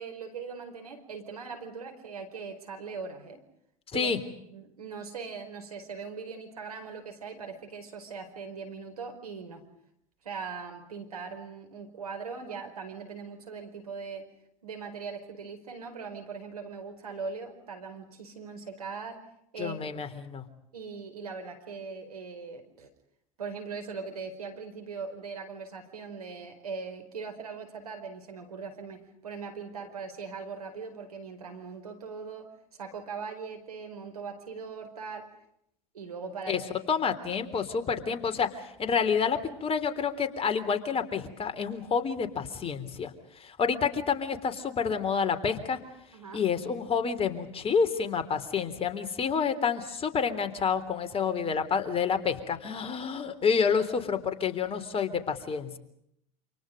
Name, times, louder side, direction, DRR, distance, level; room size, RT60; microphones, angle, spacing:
voice 1, 0.0-3.4 3.9-4.1 4.5-9.6 10.2-14.3 14.6-19.2 19.5-19.8 20.7-22.9 23.4-35.3 35.9-36.7 46.1-46.4, right 5 dB, 85° right, 5 dB, 4.8 m, -40 dB
voice 2, 19.6-20.5 36.5-36.6 36.9-43.1 43.4-45.8 46.3-55.8, left 6 dB, 30° left, 8 dB, 3.6 m, -29 dB
29.0 x 27.5 x 5.3 m, 0.74 s
hypercardioid pair, 80°, 19 cm